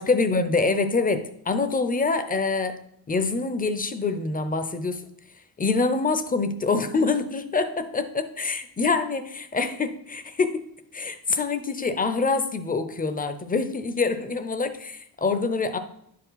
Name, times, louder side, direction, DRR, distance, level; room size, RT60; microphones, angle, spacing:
voice 1, 0.0-2.8 3.1-5.1 5.6-10.6 10.9-15.8, left 4 dB, 25° left, 9 dB, 0.6 m, -25 dB
10.5 x 4.7 x 4.0 m, 0.73 s
cardioid pair, 125°, 37 cm